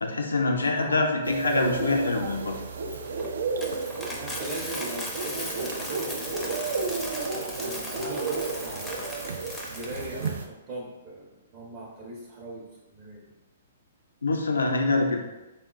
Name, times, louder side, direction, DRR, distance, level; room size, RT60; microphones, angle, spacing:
voice 1, 0.0-2.6 14.2-15.2, left 3 dB, 85° left, 3 dB, 0.4 m, -25 dB
voice 2, 0.5-1.0 4.1-6.5 7.6-9.4 9.7-13.3, right 2 dB, 40° right, -5 dB, 0.7 m, -39 dB
sound 1, 1.2-10.5, right 4 dB, 70° right, 0.3 m, -32 dB
Coin (dropping), 2.9-10.3, left 1 dB, 5° left, 0.5 m, -37 dB
3.6 x 2.1 x 2.4 m, 1.0 s
hypercardioid pair, 125°, 0 cm